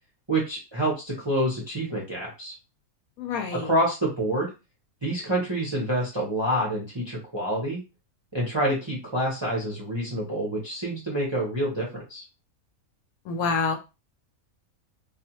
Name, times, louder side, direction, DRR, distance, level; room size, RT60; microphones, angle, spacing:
voice 1, 0.3-2.5 3.6-4.5 5.0-7.8 8.3-12.2, right 1 dB, 30° right, -3 dB, 0.5 m, -27 dB
voice 2, 3.2-3.7 13.3-13.8, left 4 dB, 80° left, 4 dB, 1.0 m, -27 dB
2.4 x 2.2 x 2.8 m, 0.28 s
omnidirectional pair, 1.5 m